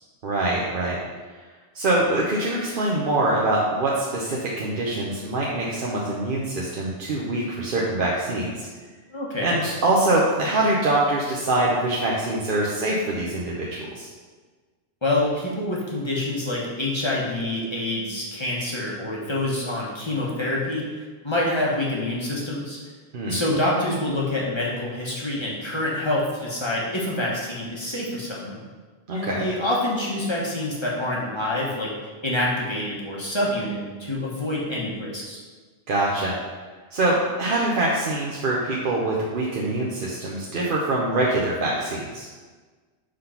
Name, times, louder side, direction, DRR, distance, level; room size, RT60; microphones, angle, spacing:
voice 1, 0.2-1.0 1.7-8.7 9.4-14.1 23.1-23.4 29.1-29.4 35.9-36.4 36.9-42.3, right 2 dB, 55° right, -4 dB, 0.9 m, -24 dB
voice 2, 9.1-9.6 15.0-20.8 21.2-22.8 23.3-28.6 29.1-35.4, left 1 dB, 25° left, -5 dB, 1.2 m, -26 dB
5.0 x 4.0 x 5.7 m, 1.4 s
omnidirectional pair, 1.1 m